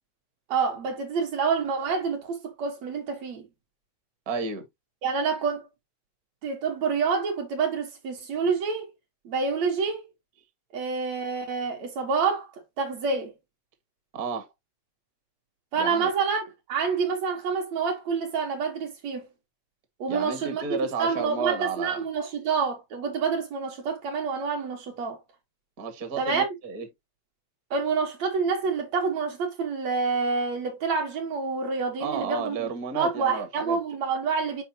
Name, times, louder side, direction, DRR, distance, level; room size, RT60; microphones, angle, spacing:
voice 1, 0.5-3.5 5.0-5.7 6.4-8.9 9.3-10.0 10.7-12.5 12.8-13.3 15.7-19.3 20.0-20.6 21.0-25.2 26.2-26.5 27.7-32.7 33.0-34.6, right 5 dB, 60° right, 2.2 m, -27 dB
voice 2, 4.2-4.6 14.1-14.5 15.8-16.1 20.1-22.0 25.8-26.9 32.0-33.8, right 5 dB, 40° right, 1.4 m, -32 dB
7.7 x 5.1 x 2.8 m
omnidirectional pair, 4.0 m